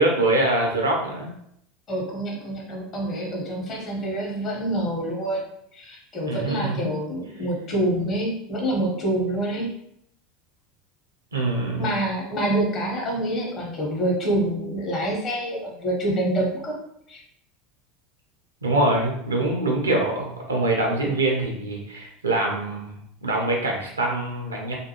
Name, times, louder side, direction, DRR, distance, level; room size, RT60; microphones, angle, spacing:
voice 1, 0.0-1.3 6.3-6.9 11.3-11.9 18.6-23.0 23.2-24.7, right 2 dB, 85° right, 0 dB, 0.6 m, -24 dB
voice 2, 1.9-5.5 5.7-9.7 11.7-16.8 17.1-17.2, right 1 dB, 40° left, -1 dB, 1.0 m, -26 dB
2.5 x 2.3 x 2.9 m, 0.74 s
figure-of-eight pair, 75°, 0 cm